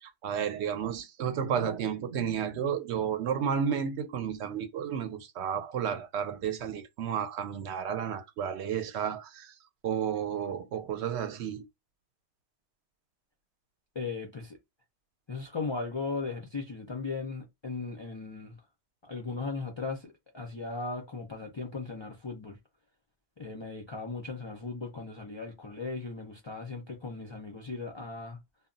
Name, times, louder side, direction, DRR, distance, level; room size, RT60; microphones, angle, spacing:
voice 1, 0.0-9.5 9.8-11.6, right 8 dB, 70° right, 0.8 m, -32 dB
voice 2, 14.0-14.6 15.3-18.5 19.1-22.6 23.4-28.4, left 4 dB, 45° left, 0.3 m, -37 dB
2.2 x 2.0 x 3.7 m
omnidirectional pair, 1.2 m